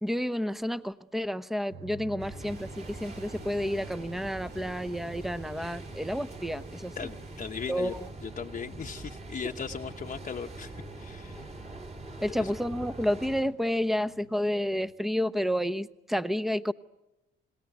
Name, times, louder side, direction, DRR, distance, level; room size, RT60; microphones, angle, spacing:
voice 1, 0.0-6.9 7.7-8.1 12.2-16.7, equal, ahead, 14 dB, 1.0 m, -30 dB
sound 1, 1.7-14.9, right 3 dB, 75° right, 3.4 m, -52 dB
sound 2, 2.2-13.4, right 2 dB, 35° right, 5.2 m, -43 dB
sound 3, 2.4-8.1, right 3 dB, 55° right, 4.9 m, -55 dB
voice 2, 7.0-7.9 8.2-11.5 12.3-12.5, left 6 dB, 40° left, 3 dB, 1.1 m, -38 dB
27.5 x 20.0 x 9.2 m, 0.99 s
cardioid pair, 90°, 20 cm